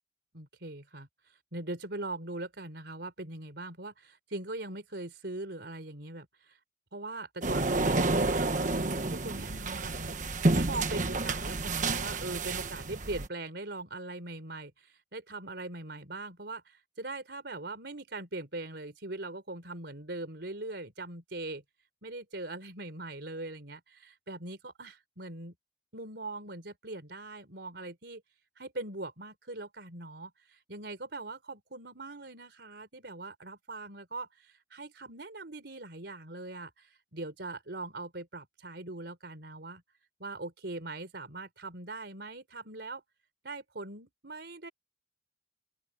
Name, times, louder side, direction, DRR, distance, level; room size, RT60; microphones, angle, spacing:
voice 1, 0.3-6.6 6.9-21.6 22.0-25.5 25.9-28.2 28.6-39.8 40.2-43.0 43.4-44.7, right 2 dB, 65° right, 4.2 m, -41 dB
sound 1, 7.4-13.3, right 2 dB, 45° right, 1.3 m, -30 dB
open air
head